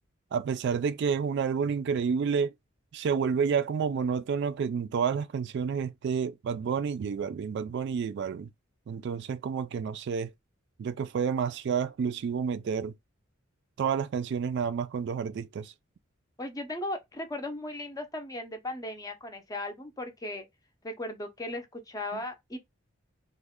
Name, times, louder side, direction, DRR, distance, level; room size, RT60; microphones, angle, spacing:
voice 1, 0.3-2.5 2.9-8.5 8.9-10.3 10.8-12.9 13.8-15.7 22.1-22.2, right 6 dB, 55° right, 0.3 m, -29 dB
voice 2, 16.4-20.5 20.8-22.6, left 1 dB, 15° left, 0.5 m, -37 dB
3.1 x 2.2 x 3.5 m
head